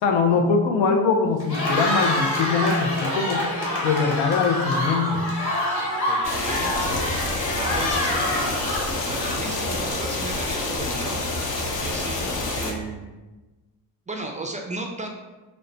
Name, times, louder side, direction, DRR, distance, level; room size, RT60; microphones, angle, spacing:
voice 1, 0.0-3.5 3.8-5.2, left 5 dB, 85° left, 5 dB, 0.6 m, -22 dB
Cheering, 1.4-9.6, left 1 dB, 60° left, 1.4 m, -26 dB
voice 2, 6.0-6.8 7.5-8.6 8.9-11.2 11.8-13.1 14.1-15.1, right 2 dB, 20° right, 2 dB, 0.3 m, -34 dB
sound 1, 6.2-12.7, left 2 dB, 45° left, 0.7 m, -28 dB
3.1 x 2.1 x 3.8 m, 1.1 s
supercardioid pair, 70°, 45 cm